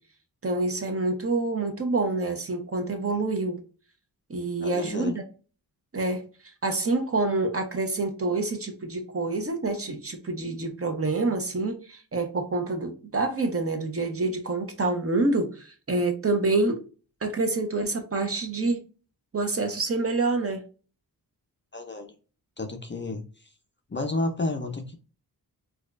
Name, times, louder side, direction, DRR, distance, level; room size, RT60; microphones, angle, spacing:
voice 1, 0.4-3.6 4.3-5.2 5.9-6.3 6.6-16.8 17.2-18.8 19.3-20.6, right 3 dB, 35° right, 5 dB, 0.8 m, -27 dB
voice 2, 4.6-5.2 21.7-22.1 22.6-23.2 23.9-24.9, left 2 dB, 30° left, 4 dB, 0.5 m, -31 dB
4.2 x 2.4 x 2.4 m, 0.36 s
cardioid pair, 75°, 39 cm